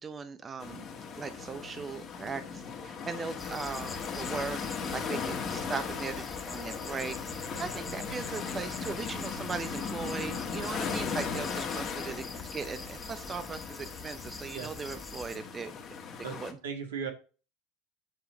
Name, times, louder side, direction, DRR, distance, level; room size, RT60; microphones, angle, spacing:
voice 1, 0.0-0.9 1.2-4.6 4.9-7.2 7.6-15.7 16.4-16.6, right 5 dB, 25° right, 11 dB, 0.8 m, -38 dB
sound 1, 0.6-16.5, left 6 dB, 40° left, 1.9 m, -38 dB
sound 2, 3.4-15.4, left 3 dB, 15° left, 1.3 m, -45 dB
voice 2, 16.2-17.1, right 6 dB, 80° right, 5 dB, 1.9 m, -37 dB
8.7 x 3.8 x 6.3 m, 0.34 s
hypercardioid pair, 85°, 0 cm